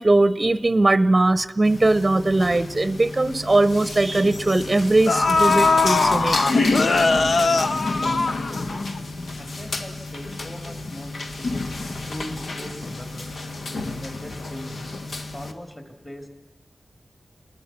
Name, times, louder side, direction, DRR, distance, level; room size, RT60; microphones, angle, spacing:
voice 1, 0.0-6.4, right 2 dB, 25° right, 15 dB, 0.8 m, -20 dB
sound 1, 1.6-15.5, left 2 dB, 80° left, 1.8 m, -30 dB
sound 2, 2.9-3.0 3.4-3.6 4.6-4.7 5.1-9.0 9.3-9.4, left 3 dB, 60° left, 0.9 m, -20 dB
voice 2, 7.1-8.9 9.4-11.5 12.1-13.3 14.0-14.8 15.2-16.3, left 1 dB, 20° left, 5 dB, 3.4 m, -40 dB
29.5 x 21.0 x 6.0 m, 0.97 s
wide cardioid pair, 90°, 0 cm